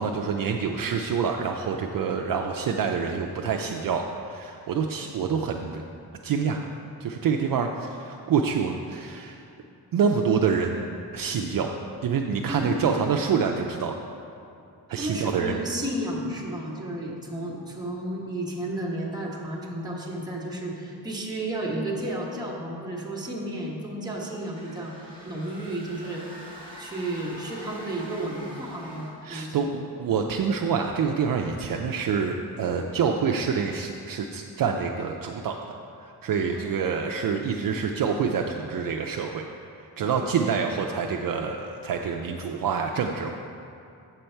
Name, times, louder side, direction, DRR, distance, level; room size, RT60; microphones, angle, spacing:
voice 1, 0.0-5.8 6.2-6.7 7.0-9.4 9.9-10.8 11.1-11.7 12.0-14.0 14.9-15.6 29.2-35.6 36.0-39.5 39.8-43.3, right 6 dB, 55° right, 2 dB, 0.5 m, -27 dB
voice 2, 12.4-12.8 14.9-24.9 25.2-26.2 26.8-29.6 36.5-36.6 40.1-40.3 42.5-42.6, right 1 dB, 10° right, -4 dB, 1.2 m, -32 dB
sound 1, 24.4-29.3, equal, 20° left, 1.6 m, -44 dB
7.7 x 6.7 x 4.4 m, 2.6 s
wide cardioid pair, 150°, 41 cm